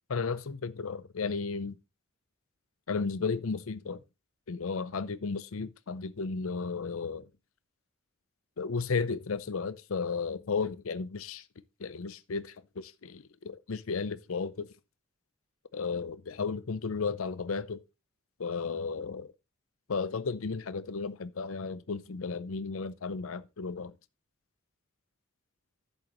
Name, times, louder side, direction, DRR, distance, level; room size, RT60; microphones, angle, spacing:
voice 1, 0.1-1.8 2.9-4.0 4.5-7.3 8.6-11.4 11.8-14.7 15.7-17.8 18.4-19.3 19.9-23.9, left 4 dB, 70° left, 0.6 m, -34 dB
11.0 x 8.0 x 3.0 m
head